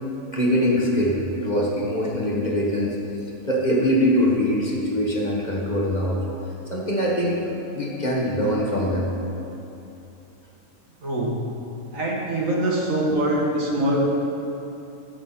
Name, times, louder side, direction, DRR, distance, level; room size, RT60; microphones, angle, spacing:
voice 1, 0.3-3.0 3.5-6.2 6.7-7.4 7.7-9.1 13.1-13.2, equal, 30° left, -3 dB, 1.6 m, -23 dB
voice 2, 11.0-11.4 11.9-14.1, right 1 dB, 65° right, -3 dB, 2.3 m, -23 dB
12.0 x 6.6 x 7.4 m, 2.9 s
omnidirectional pair, 1.5 m